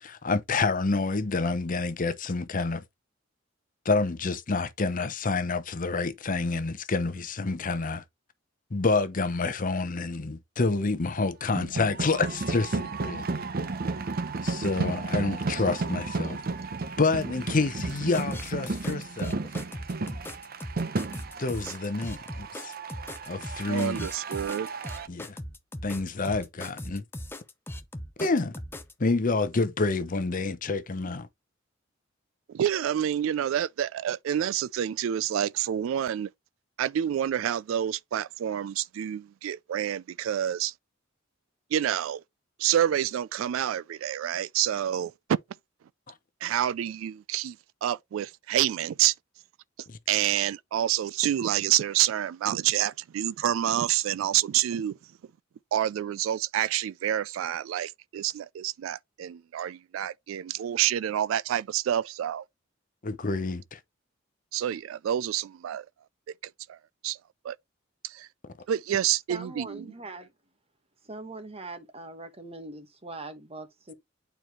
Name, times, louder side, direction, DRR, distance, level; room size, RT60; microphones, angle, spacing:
voice 1, 0.0-2.8 3.8-8.0 8.7-13.3 14.4-16.4 17.0-19.4 21.4-22.7 23.2-24.1 25.1-25.4 25.8-27.0 28.2-28.5 29.0-31.3 49.9-50.0 63.0-63.8, left 3 dB, 45° left, 0.8 m, -28 dB
sound 1, 11.6-25.1, right 3 dB, 50° right, 0.7 m, -33 dB
sound 2, 17.8-28.9, left 1 dB, 10° left, 0.7 m, -39 dB
voice 2, 23.7-24.7 32.5-36.3 36.8-40.7 41.7-42.2 42.6-45.1 46.4-47.6 47.8-49.1 50.1-55.0 55.7-62.4 64.5-65.9 66.7-66.8 67.0-67.2 67.4-67.6 68.0-68.3 68.7-69.9, right 11 dB, 90° right, 0.3 m, -28 dB
voice 3, 69.3-70.3 71.0-73.9, right 2 dB, 30° right, 1.4 m, -41 dB
8.8 x 4.6 x 3.0 m
head